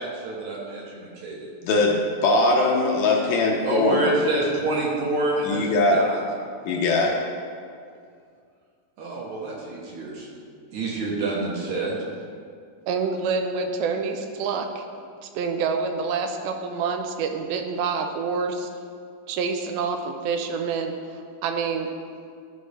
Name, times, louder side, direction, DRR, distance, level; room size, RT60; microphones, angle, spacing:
voice 1, 0.0-1.5 3.6-6.2 9.0-10.3 10.7-12.0, right 2 dB, 65° right, -4 dB, 2.1 m, -27 dB
voice 2, 1.6-4.2 5.4-6.0 6.7-7.2, left 2 dB, 75° left, -1 dB, 2.1 m, -21 dB
voice 3, 12.9-14.8 15.4-18.7 19.3-21.9, right 5 dB, 85° right, 5 dB, 2.5 m, -27 dB
12.5 x 5.2 x 3.3 m, 2.2 s
omnidirectional pair, 4.2 m